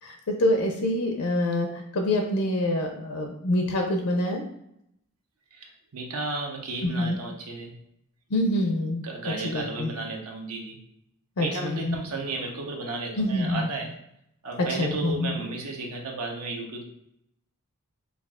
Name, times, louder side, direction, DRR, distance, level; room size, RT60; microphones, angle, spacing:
voice 1, 0.0-4.4 6.8-7.2 8.3-9.0 9.4-9.9 11.4-12.0 13.2-13.7 14.6-15.3, left 1 dB, 75° left, 3 dB, 0.5 m, -26 dB
voice 2, 5.5-7.7 9.0-10.8 11.4-13.9 14.4-16.8, right 3 dB, 75° right, 1 dB, 0.7 m, -33 dB
5.6 x 2.4 x 2.4 m, 0.77 s
head